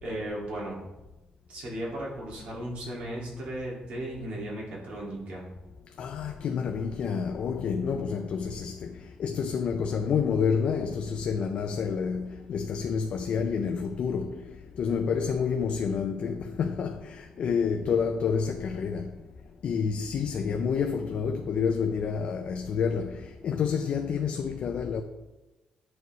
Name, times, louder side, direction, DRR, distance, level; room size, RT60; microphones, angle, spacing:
voice 1, 0.0-0.8 1.5-5.5, right 1 dB, 65° right, 2.1 m, -36 dB
voice 2, 6.0-19.1 19.6-25.0, left 6 dB, 50° left, 0.4 m, -29 dB
9.3 x 4.7 x 3.1 m
cardioid pair, 165°, 2 cm